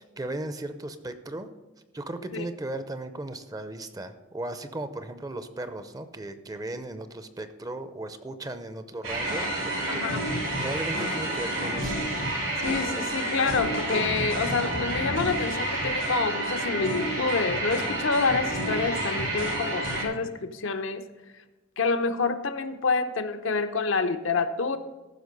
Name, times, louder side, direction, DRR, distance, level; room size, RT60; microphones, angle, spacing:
voice 1, 0.2-1.5 1.9-10.0 10.6-12.1 13.0-13.1, right 1 dB, 20° right, 10 dB, 0.5 m, -36 dB
sound 1, 9.0-20.0, right 1 dB, 85° right, 3.6 m, -29 dB
voice 2, 9.9-10.3 12.6-21.0 21.8-24.8, left 4 dB, 70° left, 8 dB, 0.7 m, -27 dB
14.5 x 6.0 x 5.3 m, 1.2 s
head